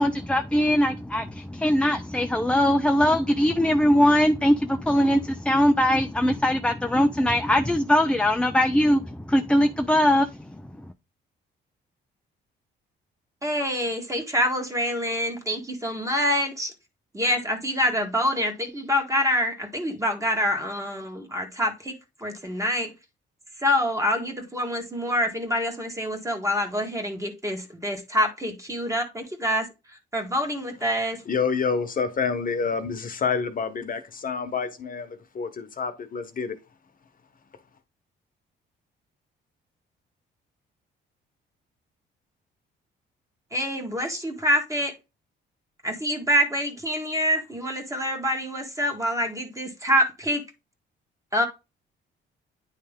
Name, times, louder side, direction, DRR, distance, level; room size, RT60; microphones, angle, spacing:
voice 1, 0.0-10.3, left 1 dB, 5° left, 0.4 m, -21 dB
voice 2, 13.4-16.7 17.1-21.9 22.2-22.9 23.6-31.2 43.5-44.9 45.8-50.4 51.3-51.5, equal, 15° right, 1.7 m, -26 dB
voice 3, 31.3-36.6, left 5 dB, 45° left, 1.1 m, -28 dB
9.7 x 3.3 x 3.6 m
cardioid pair, 90°, 20 cm